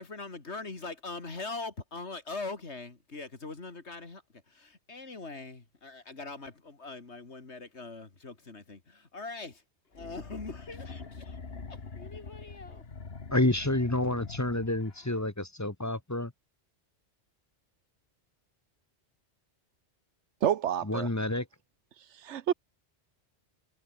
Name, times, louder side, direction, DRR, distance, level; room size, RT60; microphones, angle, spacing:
voice 1, 0.0-4.2 4.5-9.6 9.9-11.4 11.7-12.8, left 3 dB, 75° left, 3.1 m, -42 dB
sound 1, 9.9-15.2, left 4 dB, 60° left, 2.1 m, -44 dB
voice 2, 13.3-16.3 20.8-21.5, left 1 dB, 15° left, 1.2 m, -29 dB
voice 3, 20.4-21.1 22.2-22.5, right 10 dB, 90° right, 1.1 m, -28 dB
omnidirectional pair, 1.2 m